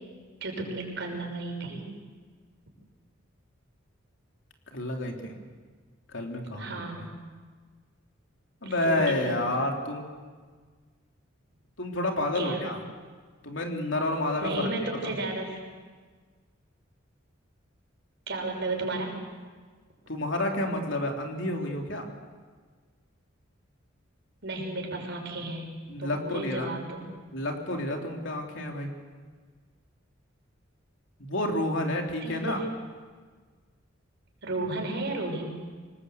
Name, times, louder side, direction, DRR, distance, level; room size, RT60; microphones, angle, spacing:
voice 1, 0.4-1.8 6.6-7.1 8.6-9.5 12.3-12.6 14.4-15.6 18.3-19.2 24.4-25.7 26.0-27.0 32.2-32.6 34.4-35.5, right 2 dB, 60° right, 1 dB, 6.1 m, -33 dB
voice 2, 4.7-5.4 6.1-7.1 8.6-10.1 11.8-12.8 13.4-14.7 15.0-15.1 20.1-22.1 25.9-26.8 27.3-28.9 31.2-32.6, left 1 dB, 65° left, 2 dB, 3.4 m, -30 dB
26.5 x 19.5 x 8.2 m, 1.5 s
head